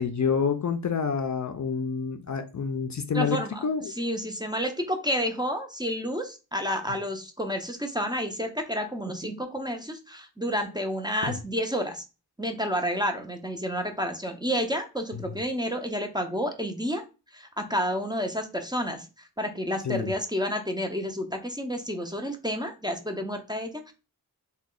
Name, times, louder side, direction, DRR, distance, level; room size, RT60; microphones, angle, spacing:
voice 1, 0.0-3.4 3.6-3.9 11.2-11.4 19.8-20.1, left 6 dB, 45° left, 8 dB, 0.5 m, -28 dB
voice 2, 3.1-12.0 12.4-17.0 17.3-23.9, equal, 10° right, 4 dB, 0.6 m, -30 dB
2.9 x 2.2 x 3.7 m, 0.31 s
wide cardioid pair, 45°, 39 cm